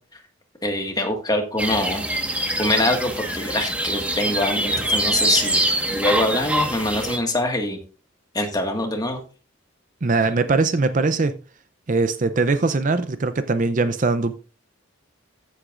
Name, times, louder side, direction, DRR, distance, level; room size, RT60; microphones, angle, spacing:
voice 1, 0.6-2.0 2.6-5.6 5.9-7.8 8.3-9.2, left 1 dB, 20° left, 1.7 m, -24 dB
sound 1, 1.6-7.2, right 1 dB, 5° right, 1.4 m, -24 dB
voice 2, 10.0-11.3 11.9-14.4, right 3 dB, 40° right, 0.5 m, -21 dB
14.5 x 8.0 x 2.5 m
head